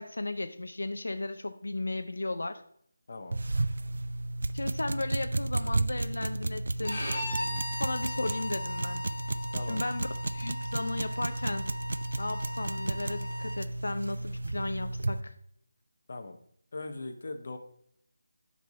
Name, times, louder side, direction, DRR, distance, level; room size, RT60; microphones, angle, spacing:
voice 1, 0.0-2.6 4.5-7.1 7.7-9.0 9.7-11.7 12.2-15.3, left 2 dB, 90° left, 9 dB, 0.5 m, -35 dB
voice 2, 3.1-3.4 7.4-7.6 9.5-9.8 16.1-16.4 16.7-17.6, left 3 dB, 45° left, 6 dB, 0.7 m, -40 dB
sound 1, 3.3-15.2, right 2 dB, 65° right, 0.3 m, -33 dB
Bowed string instrument, 6.8-13.6, left 2 dB, 30° left, 2.8 m, -39 dB
7.6 x 5.4 x 2.7 m, 0.67 s
figure-of-eight pair, 175°, 0 cm